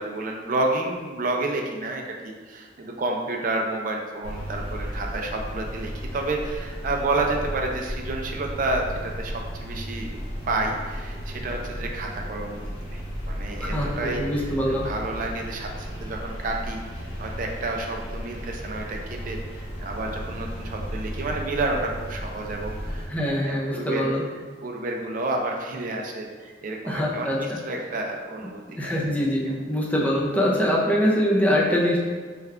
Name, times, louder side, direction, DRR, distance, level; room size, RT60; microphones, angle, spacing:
voice 1, 0.0-23.1 23.4-24.1 24.6-29.0 29.5-29.6, right 2 dB, 50° right, 1 dB, 0.4 m, -30 dB
sound 1, 4.2-23.1, equal, 85° left, 0.9 m, -34 dB
voice 2, 13.5-13.9 14.2-14.9 23.1-24.2 26.9-27.6 28.8-32.0, equal, 10° left, -4 dB, 0.5 m, -23 dB
3.2 x 2.3 x 3.5 m, 1.5 s
head